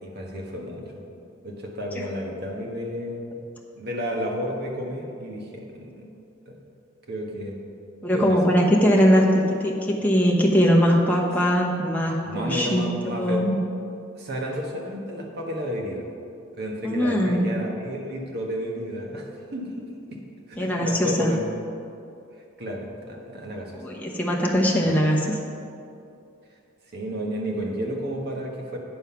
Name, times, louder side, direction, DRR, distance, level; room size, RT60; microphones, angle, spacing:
voice 1, 0.0-0.9 1.4-3.2 3.8-6.0 6.5-6.6 7.1-7.6 8.1-8.6 12.2-13.6 14.2-16.1 16.6-20.2 20.5-21.4 22.6-23.8 26.9-28.8, equal, 50° right, 0 dB, 1.3 m, -31 dB
voice 2, 8.0-13.6 16.8-17.5 20.6-21.3 23.7-25.4, equal, 10° left, -3 dB, 0.9 m, -21 dB
9.3 x 5.6 x 5.7 m, 2.6 s
head